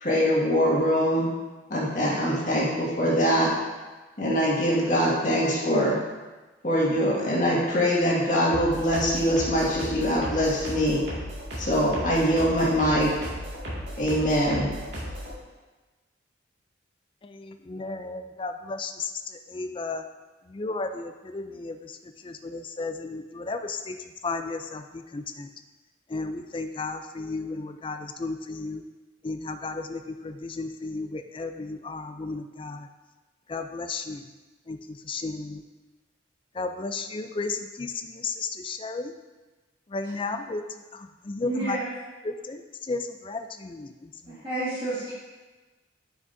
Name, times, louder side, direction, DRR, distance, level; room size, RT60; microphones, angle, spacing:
voice 1, 0.0-1.3 1.7-3.5 4.2-6.0 6.6-11.0 11.6-13.1 14.0-14.7, equal, 45° left, -6 dB, 1.9 m, -23 dB
sound 1, 8.5-15.3, equal, 60° right, 2.2 m, -35 dB
voice 2, 17.2-20.0 20.5-25.5 26.1-28.8 29.2-32.9 33.5-34.3 34.7-35.6 36.5-39.1 39.9-41.8 42.2-44.4, left 3 dB, 25° left, 7 dB, 0.4 m, -34 dB
voice 3, 41.4-41.9 44.2-45.1, right 2 dB, 25° right, -12 dB, 2.1 m, -30 dB
9.1 x 6.0 x 2.7 m, 1.2 s
head